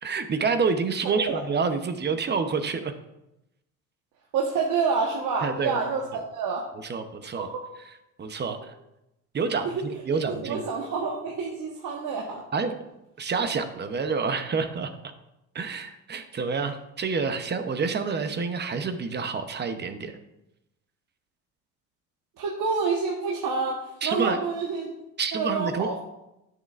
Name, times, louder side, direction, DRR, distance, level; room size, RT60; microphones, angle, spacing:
voice 1, 0.0-2.9 5.4-5.8 6.8-7.5 8.2-8.8 9.3-10.6 12.5-12.7 13.2-15.0 15.5-20.2 24.0-24.4 25.2-25.9, right 5 dB, 30° right, 9 dB, 0.9 m, -28 dB
voice 2, 4.3-6.6 7.4-7.7 9.6-12.4 22.4-24.9 25.3-26.0, right 5 dB, 60° right, -1 dB, 1.4 m, -28 dB
10.5 x 6.7 x 2.5 m, 0.90 s
supercardioid pair, 100°, 36 cm